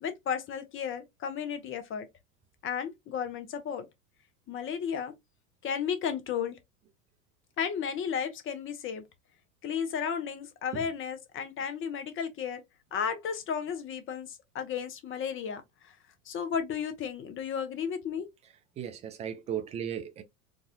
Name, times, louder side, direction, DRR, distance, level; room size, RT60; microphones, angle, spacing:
voice 1, 0.0-2.1 2.6-3.9 4.5-5.1 5.6-6.6 7.6-9.0 9.6-12.6 12.9-16.0 16.3-18.3, left 7 dB, 25° left, 0.8 m, -33 dB
voice 2, 18.8-20.2, right 9 dB, 15° right, 0.3 m, -36 dB
4.0 x 2.4 x 2.7 m
figure-of-eight pair, 85°, 46 cm